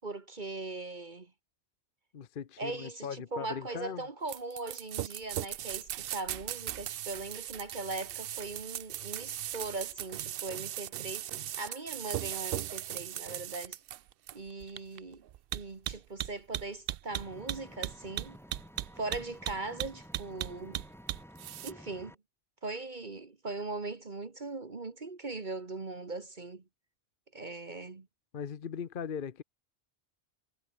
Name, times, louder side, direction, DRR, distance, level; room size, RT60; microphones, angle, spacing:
voice 1, 0.0-1.3 2.6-11.3 11.6-13.8 14.3-15.2 15.5-18.4 19.0-20.8 21.6-22.2 22.6-26.6 27.3-28.1, right 3 dB, 45° right, 1.7 m, -40 dB
voice 2, 2.1-4.1 28.3-29.4, left 7 dB, 55° left, 1.0 m, -39 dB
sound 1, 4.3-21.7, right 12 dB, 65° right, 0.7 m, -38 dB
Engine, 17.1-22.1, equal, ahead, 1.4 m, -52 dB
omnidirectional pair, 1.1 m